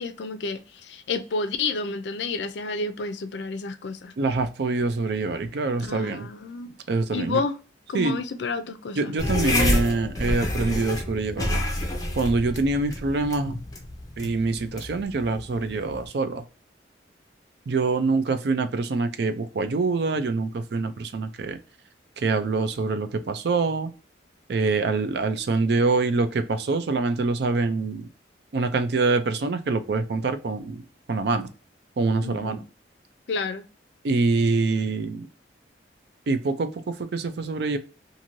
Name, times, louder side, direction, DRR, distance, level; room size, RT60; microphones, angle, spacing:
voice 1, 0.0-4.1 5.8-6.7 7.1-7.6 7.9-9.1 32.2-32.6 33.3-33.6, left 3 dB, 70° left, 0.4 m, -30 dB
voice 2, 4.2-6.3 6.9-7.4 7.9-8.2 9.0-11.6 12.2-13.5 14.2-16.4 17.7-21.6 22.2-23.9 24.5-28.1 28.5-31.5 32.0-32.6 34.0-35.3 36.3-37.8, right 3 dB, 60° right, 0.4 m, -25 dB
sound 1, 9.2-16.1, left 1 dB, 20° left, 0.6 m, -28 dB
2.6 x 2.6 x 2.9 m
head